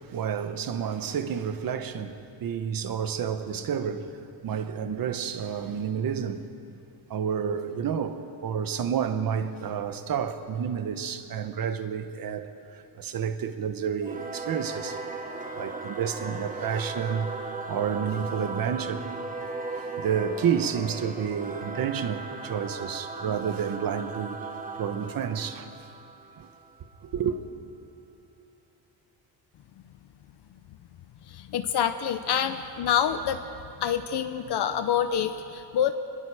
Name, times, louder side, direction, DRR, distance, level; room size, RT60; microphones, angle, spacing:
voice 1, 0.0-4.1 4.4-6.5 7.1-15.0 15.6-19.3 19.7-24.5 24.8-25.7 26.4-26.5 27.0-27.4, right 7 dB, 50° right, 1.2 m, -30 dB
Singing / Musical instrument, 14.0-26.9, right 3 dB, 20° right, 1.3 m, -37 dB
voice 2, 31.3-33.4 33.8-35.9, left 9 dB, 60° left, 0.8 m, -26 dB
28.0 x 20.5 x 5.0 m
cardioid pair, 170°, 46 cm